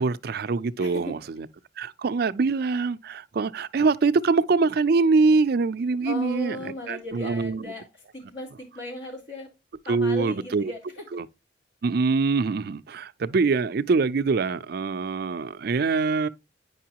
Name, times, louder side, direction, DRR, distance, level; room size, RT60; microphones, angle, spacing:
voice 1, 0.0-1.5 1.8-7.6 9.9-10.7 11.1-11.3 11.8-16.3, right 4 dB, 55° right, 0.4 m, -24 dB
voice 2, 0.8-1.2 6.0-7.8 8.1-9.5 9.8-11.0, left 1 dB, 80° left, 3.9 m, -36 dB
9.2 x 5.4 x 2.8 m
head